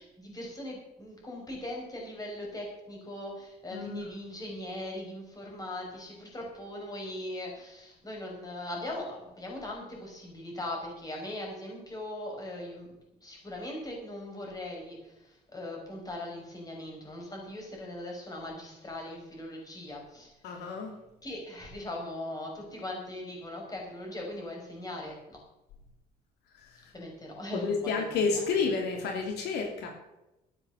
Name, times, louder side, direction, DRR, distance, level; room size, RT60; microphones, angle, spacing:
voice 1, 0.0-20.6 21.2-25.4 26.9-28.1, left 1 dB, 20° left, -1 dB, 6.3 m, -40 dB
voice 2, 3.7-4.1 20.4-21.0 26.5-26.9 27.5-29.9, left 4 dB, 80° left, 3 dB, 2.7 m, -30 dB
13.0 x 9.8 x 7.0 m, 0.93 s
cardioid pair, 110°, 17 cm